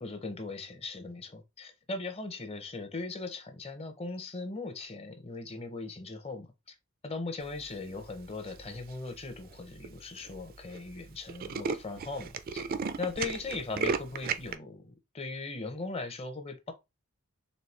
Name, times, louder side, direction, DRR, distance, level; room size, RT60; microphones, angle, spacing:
voice 1, 0.0-6.7 7.0-12.6 13.0-16.7, left 3 dB, 30° left, 0.7 m, -39 dB
Tools, 8.5-8.9 9.5-9.6 9.8-9.9 10.2-10.4 10.7-10.8 11.1-14.5, right 5 dB, 45° right, 0.4 m, -34 dB
4.2 x 3.1 x 3.3 m
head